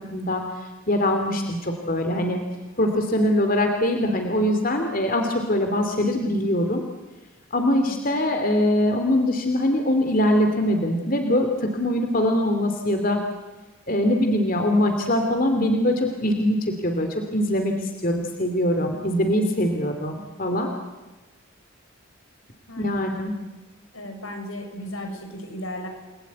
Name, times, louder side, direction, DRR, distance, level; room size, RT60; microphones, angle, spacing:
voice 1, 0.1-0.4 0.9-2.4 2.8-6.8 7.5-13.2 13.9-20.7 22.8-23.3, left 1 dB, 40° left, 5 dB, 2.7 m, -22 dB
voice 2, 7.8-8.3 22.7-23.1 23.9-25.9, left 1 dB, 80° left, 4 dB, 6.1 m, -36 dB
29.5 x 20.5 x 9.4 m, 1.1 s
head